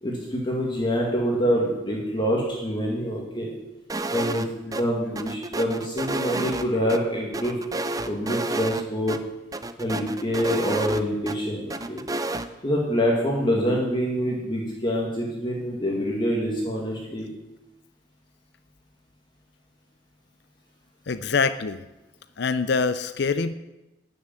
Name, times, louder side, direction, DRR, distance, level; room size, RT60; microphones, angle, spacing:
voice 1, 0.0-3.5 4.1-7.6 8.1-9.2 9.8-12.0 12.6-17.3, equal, 25° left, -2 dB, 2.1 m, -26 dB
sound 1, 3.9-4.5 4.7-4.8 5.2-7.0 7.3-8.8 9.1-9.2 9.5-11.4 11.7-12.5, right 2 dB, 20° right, 0.6 m, -30 dB
voice 2, 21.1-21.8 22.4-23.5, left 4 dB, 60° left, 13 dB, 0.5 m, -24 dB
12.5 x 6.7 x 8.9 m, 1.0 s
head